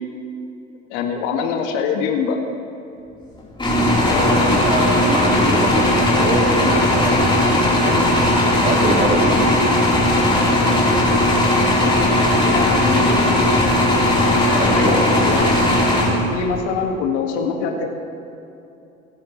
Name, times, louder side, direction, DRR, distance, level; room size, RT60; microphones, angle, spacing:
voice 1, 0.9-2.4 4.1-4.7 12.4-13.5 14.7-15.5 16.3-17.9, left 6 dB, 55° left, 3 dB, 1.8 m, -24 dB
sound 1, 3.6-16.6, left 1 dB, 10° left, 3.6 m, -17 dB
voice 2, 4.2-9.5 10.7-10.9 13.0-13.4 14.1-15.0, right 2 dB, 20° right, 1 dB, 1.9 m, -25 dB
28.0 x 10.5 x 3.1 m, 2.8 s
figure-of-eight pair, 75°, 40 cm